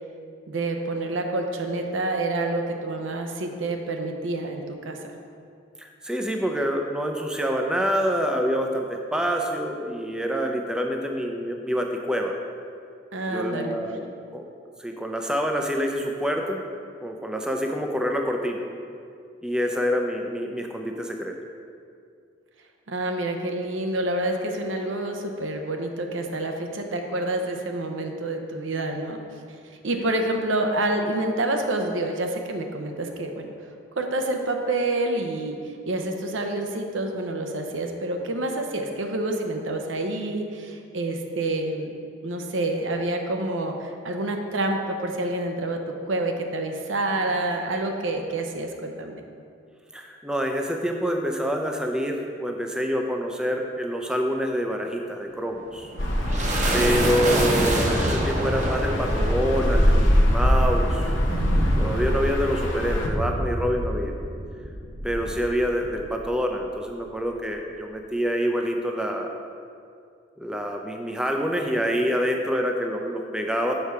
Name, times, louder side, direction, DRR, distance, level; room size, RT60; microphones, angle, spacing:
voice 1, 0.5-5.0 13.1-13.8 22.9-29.2 29.7-33.5 34.0-41.9 42.2-45.8 46.1-49.2, right 2 dB, 85° right, 4 dB, 0.7 m, -28 dB
voice 2, 5.8-12.4 13.3-14.4 14.8-16.6 17.0-18.6 19.4-21.4 29.9-30.0 49.9-55.9 56.7-61.1 61.8-64.1 65.0-69.3 70.4-73.7, equal, 5° right, 2 dB, 0.4 m, -26 dB
sound 1, 55.5-66.2, right 1 dB, 40° right, 0.8 m, -28 dB
sound 2, 56.0-63.1, equal, 75° left, 0.8 m, -24 dB
6.6 x 4.7 x 5.6 m, 2.3 s
head